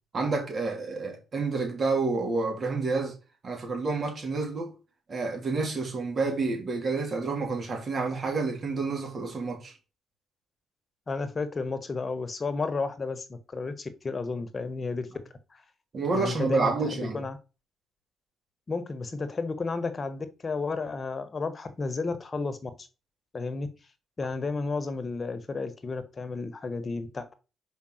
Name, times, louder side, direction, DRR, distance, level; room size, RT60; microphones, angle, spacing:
voice 1, 0.1-3.1 3.4-4.7 5.1-9.7 15.9-17.2, right 3 dB, 45° right, 3.4 m, -29 dB
voice 2, 11.1-15.1 15.5-15.6 16.1-17.4 18.7-22.9 23.3-23.7 24.2-27.3, left 4 dB, 35° left, 1.4 m, -32 dB
5.3 x 5.2 x 6.5 m
cardioid pair, 90°, 0 cm